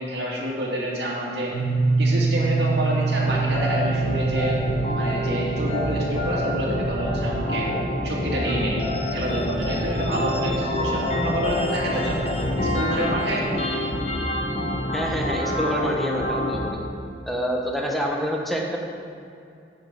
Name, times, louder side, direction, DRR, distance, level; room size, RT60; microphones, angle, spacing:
voice 1, 0.0-1.5 2.0-4.6 4.9-7.7 8.0-8.8 9.1-12.2 12.6-13.5, equal, 65° right, -4 dB, 2.0 m, -28 dB
sound 1, 1.5-11.4, right 4 dB, 60° left, 2.3 m, -27 dB
sound 2, 3.3-16.7, left 1 dB, 35° left, 1.0 m, -27 dB
voice 2, 14.9-16.8 17.3-18.8, equal, ahead, -1 dB, 0.9 m, -27 dB
9.6 x 5.6 x 5.3 m, 2.5 s
head